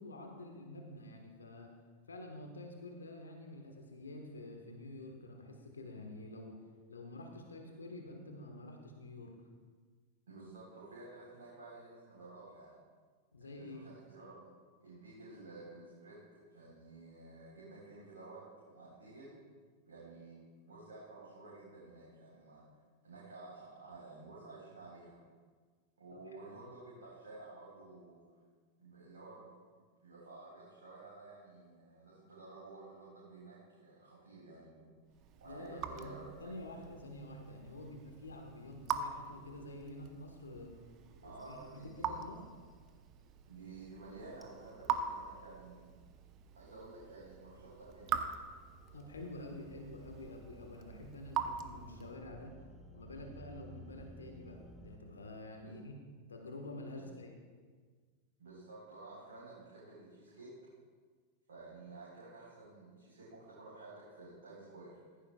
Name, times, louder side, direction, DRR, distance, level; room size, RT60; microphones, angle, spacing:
voice 1, 0.0-1.7 2.1-6.6 6.9-9.3 13.3-13.9 26.5-26.7 35.4-36.1 36.4-40.8 41.2-42.4 48.9-52.5 52.9-55.9 56.3-57.3, left 2 dB, 75° left, 3 dB, 1.5 m, -48 dB
voice 2, 10.3-12.8 13.4-14.4 14.8-19.4 19.9-22.7 23.0-25.2 26.0-28.4 28.8-29.5 30.0-34.9 35.4-36.5 41.2-42.2 43.5-45.9 46.5-48.2 55.6-55.7 56.9-57.2 58.4-60.5 61.5-65.0, right 3 dB, 65° right, -6 dB, 4.3 m, -52 dB
Raindrop / Drip, 35.1-52.3, right 7 dB, 35° right, 0.9 m, -43 dB
sound 1, 41.4-42.5 44.4-55.0, right 1 dB, 5° right, 1.3 m, -58 dB
15.5 x 15.5 x 2.4 m, 1.5 s
figure-of-eight pair, 90°, 0 cm